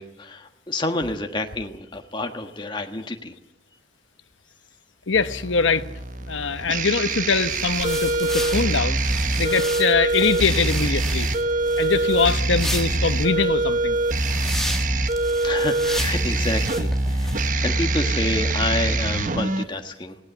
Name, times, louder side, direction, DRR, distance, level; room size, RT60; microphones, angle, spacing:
voice 1, 0.0-3.3 15.4-17.3 17.6-20.2, left 2 dB, 25° left, 1.4 m, -28 dB
voice 2, 5.1-5.9 6.3-9.0 9.4-11.3 11.8-14.0, left 4 dB, 90° left, 1.1 m, -23 dB
sound 1, 5.1-19.6, right 2 dB, 45° right, 1.1 m, -24 dB
sound 2, 7.3-17.5, left 1 dB, ahead, 1.5 m, -33 dB
21.5 x 18.0 x 8.0 m
head